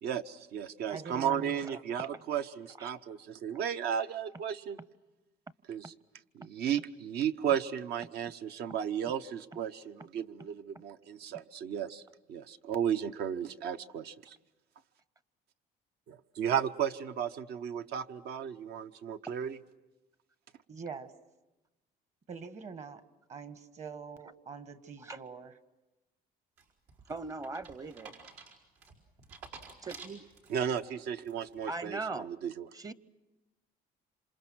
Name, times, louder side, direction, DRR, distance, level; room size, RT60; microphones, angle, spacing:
voice 1, 0.0-4.8 5.7-5.9 6.3-12.0 12.3-14.4 16.1-19.6 30.5-32.7, right 9 dB, 70° right, 10 dB, 0.9 m, -34 dB
voice 2, 0.9-1.8 20.7-21.1 22.3-23.0 23.3-25.6, right 5 dB, 45° right, 11 dB, 1.5 m, -44 dB
sound 1, 26.6-30.8 31.2-31.7, right 4 dB, 90° right, 4.7 m, -51 dB
voice 3, 27.1-28.1 29.8-30.2 31.7-32.3 32.7-32.9, right 3 dB, 20° right, 17 dB, 0.7 m, -39 dB
27.0 x 27.0 x 6.2 m, 1.0 s
cardioid pair, 110°, 17 cm